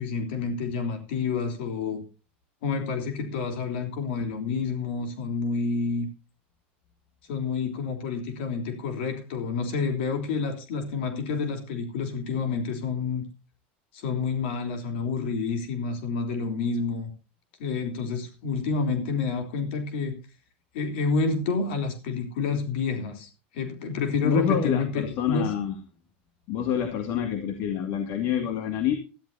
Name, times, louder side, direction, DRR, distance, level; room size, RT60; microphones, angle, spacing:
voice 1, 0.0-2.0 2.6-6.1 7.3-13.2 13.9-17.1 17.6-20.2 20.7-25.5, left 4 dB, 75° left, 5 dB, 3.3 m, -29 dB
voice 2, 24.2-25.8 26.5-29.0, left 9 dB, 55° left, 7 dB, 2.1 m, -27 dB
17.5 x 14.0 x 2.7 m, 0.32 s
supercardioid pair, 130°, 6 cm